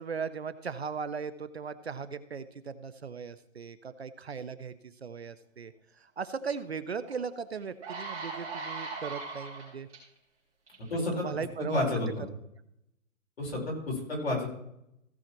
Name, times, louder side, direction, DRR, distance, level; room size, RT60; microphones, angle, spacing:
voice 1, 0.0-4.7 5.0-5.7 6.2-9.9 10.9-12.0, right 6 dB, 55° right, 13 dB, 0.7 m, -37 dB
sound 1, 7.1-7.2 7.6-10.0 10.7-10.9, right 4 dB, 25° right, 5.2 m, -39 dB
voice 2, 10.9-11.2 11.6-12.2 13.4-14.5, left 2 dB, 50° left, -2 dB, 5.3 m, -30 dB
16.0 x 7.2 x 4.5 m, 0.78 s
hypercardioid pair, 180°, 40 cm